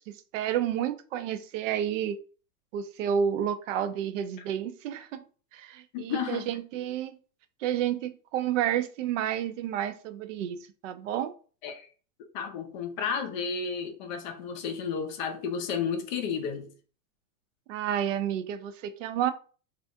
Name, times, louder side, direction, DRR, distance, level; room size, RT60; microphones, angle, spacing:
voice 1, 0.1-2.2 2.7-5.2 5.5-7.2 7.6-10.6 10.8-11.3 17.7-19.3, right 9 dB, 60° right, 0.5 m, -30 dB
voice 2, 5.9-6.5 11.6-11.9 12.3-16.7, left 6 dB, 35° left, 0.4 m, -32 dB
3.2 x 2.4 x 2.6 m
supercardioid pair, 140°, 45 cm